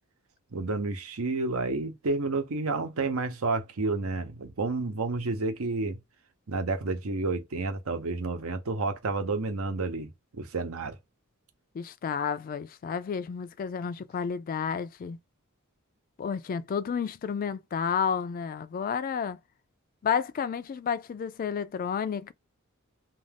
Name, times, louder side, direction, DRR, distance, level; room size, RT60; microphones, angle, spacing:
voice 1, 0.5-6.0 6.5-10.1 10.4-10.9, right 3 dB, 80° right, 0.8 m, -30 dB
voice 2, 11.7-15.2 16.2-19.4 20.0-22.3, left 7 dB, 40° left, 0.3 m, -31 dB
2.4 x 2.3 x 3.3 m
head